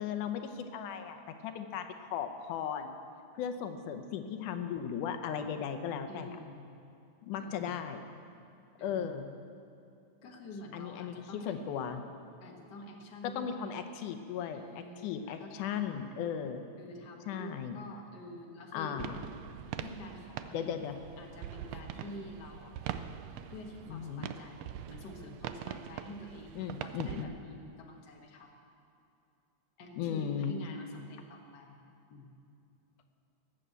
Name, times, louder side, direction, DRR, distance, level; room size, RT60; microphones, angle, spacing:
voice 1, 0.0-3.0 3.3-6.4 7.2-8.0 8.8-9.3 10.7-12.0 13.2-16.6 17.3-17.8 18.7-19.2 20.5-21.0 23.9-24.3 26.5-27.3 30.0-30.6, left 8 dB, 85° left, 7 dB, 2.4 m, -36 dB
voice 2, 6.1-6.8 7.4-7.9 8.8-9.1 10.2-11.6 12.4-13.7 14.5-16.1 16.8-19.3 19.8-20.8 21.2-22.7 23.5-28.5 29.8-31.8 32.1-32.3, left 1 dB, 40° left, 1 dB, 1.7 m, -48 dB
sound 1, 19.0-27.2, right 10 dB, 80° right, 1.5 m, -43 dB
19.0 x 7.5 x 8.1 m, 2.7 s
omnidirectional pair, 3.5 m